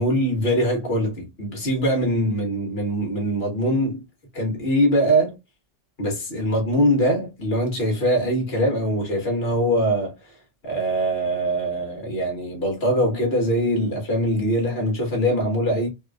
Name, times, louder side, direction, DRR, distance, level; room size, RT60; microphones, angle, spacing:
voice 1, 0.0-4.0 4.3-5.4 6.0-10.2 10.6-15.9, equal, 55° left, 1.6 m, -22 dB
3.8 x 2.4 x 2.3 m
omnidirectional pair, 1.3 m